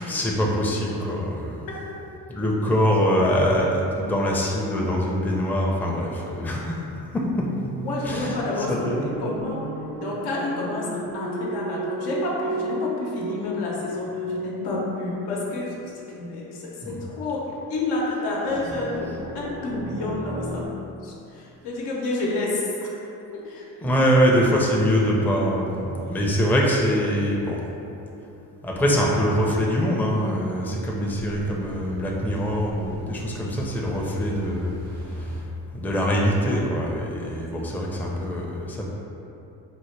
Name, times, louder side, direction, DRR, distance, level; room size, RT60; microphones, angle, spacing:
voice 1, 0.0-1.7 2.3-6.8 7.1-7.5 8.0-8.4 8.7-9.1 16.8-17.0 23.8-27.6 28.6-34.8 35.7-38.8, equal, 5° left, -2 dB, 0.5 m, -23 dB
sound 1, 7.4-16.5 18.4-20.6, right 1 dB, 50° right, 0.6 m, -33 dB
voice 2, 7.7-9.7 10.0-17.4 17.7-20.7 21.0-23.1 23.3-23.7 26.0-26.4, left 2 dB, 85° left, -4 dB, 0.8 m, -30 dB
sound 2, 30.4-35.4, equal, 80° right, 0.9 m, -38 dB
4.3 x 2.1 x 3.1 m, 2.8 s
supercardioid pair, 70°, 39 cm